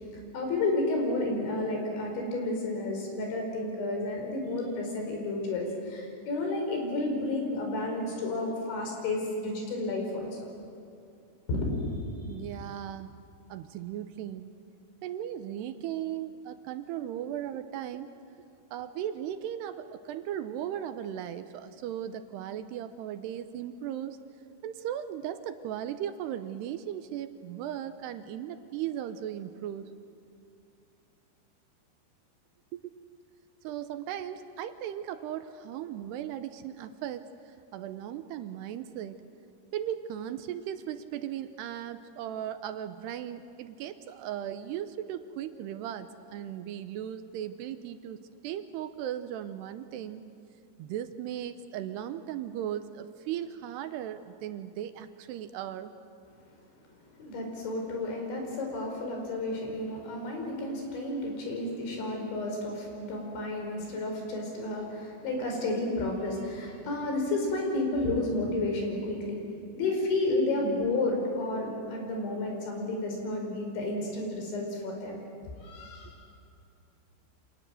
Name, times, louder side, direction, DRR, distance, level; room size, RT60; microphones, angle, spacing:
voice 1, 0.3-10.3 11.5-11.9 57.2-69.4 69.8-76.1, left 2 dB, 80° left, 1 dB, 7.3 m, -31 dB
voice 2, 12.3-13.1 13.5-14.5 15.0-18.1 18.7-24.2 24.6-29.9 32.7-32.9 33.6-39.2 39.7-50.2 50.8-55.9, right 10 dB, 75° right, 10 dB, 2.7 m, -37 dB
29.0 x 26.5 x 7.8 m, 2.5 s
omnidirectional pair, 5.2 m